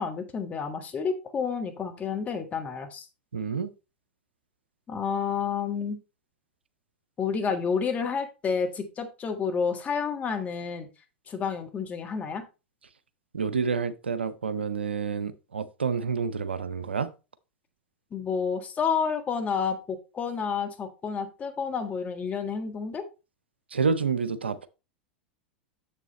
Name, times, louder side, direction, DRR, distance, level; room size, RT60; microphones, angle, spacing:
voice 1, 0.0-3.1 4.9-6.0 7.2-10.9 11.3-12.5 18.1-23.1, left 6 dB, 25° left, 1.5 m, -30 dB
voice 2, 3.3-3.7 13.3-17.1 23.7-24.7, right 5 dB, 85° right, 0.6 m, -28 dB
7.0 x 6.8 x 3.0 m
hypercardioid pair, 90°, 6 cm